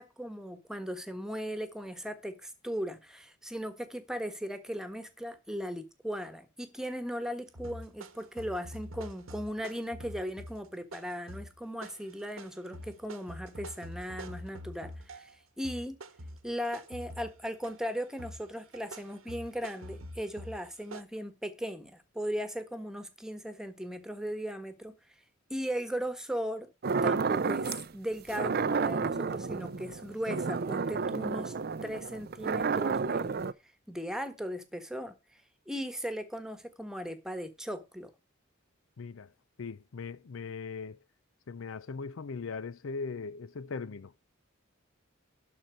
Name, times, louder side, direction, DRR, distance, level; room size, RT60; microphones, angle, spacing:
voice 1, 0.0-16.0 16.4-25.0 25.5-26.7 27.0-31.5 31.8-33.4 33.9-35.1 35.7-38.1, equal, 5° right, 1.4 m, -37 dB
sound 1, 7.6-15.4 15.6-17.9 18.2-21.0, equal, 85° right, 1.3 m, -46 dB
sound 2, 26.8-27.9 28.3-33.5, right 5 dB, 50° right, 0.5 m, -31 dB
voice 2, 39.0-39.3 39.6-41.0 41.5-44.1, left 4 dB, 70° left, 0.5 m, -39 dB
12.0 x 4.3 x 7.7 m
head